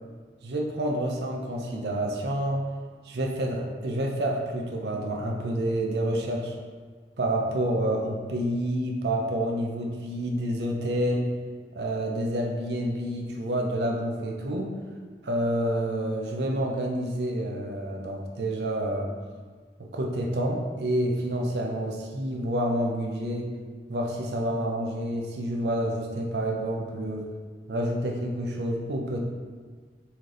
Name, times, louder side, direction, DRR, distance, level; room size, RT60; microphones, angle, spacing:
voice 1, 0.4-2.6 3.0-6.6 7.2-11.3 11.7-14.7 15.2-19.1 19.8-23.5 23.9-27.3 27.7-29.2, right 1 dB, 65° right, 1 dB, 0.6 m, -28 dB
4.2 x 3.2 x 3.8 m, 1.6 s
head